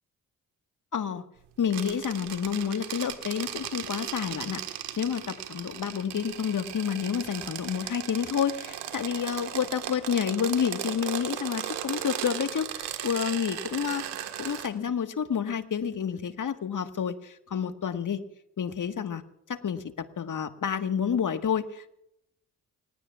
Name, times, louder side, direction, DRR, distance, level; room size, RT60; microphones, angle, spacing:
voice 1, 0.9-1.2 1.6-4.6 5.0-14.0 14.4-18.2 18.6-19.2 19.5-21.9, left 7 dB, 45° left, 8 dB, 1.6 m, -29 dB
sound 1, 1.7-14.7, right 11 dB, 75° right, 1.7 m, -37 dB
29.0 x 16.0 x 2.4 m, 0.80 s
hypercardioid pair, 45°, 41 cm